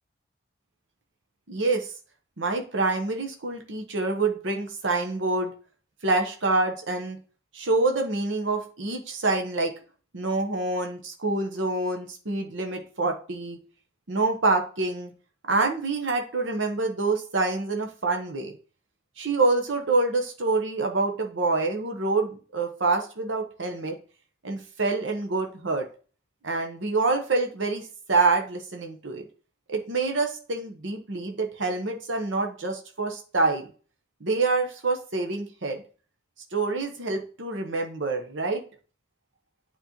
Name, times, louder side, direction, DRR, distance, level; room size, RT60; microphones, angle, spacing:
voice 1, 1.5-1.9 2.4-5.5 6.0-7.2 7.5-9.7 10.1-13.6 14.1-15.1 15.5-18.5 19.2-24.0 24.4-25.9 26.4-29.2 29.7-33.7 34.2-35.8 36.5-38.6, right 3 dB, 70° right, 3 dB, 1.0 m, -26 dB
9.3 x 4.3 x 2.9 m, 0.39 s
head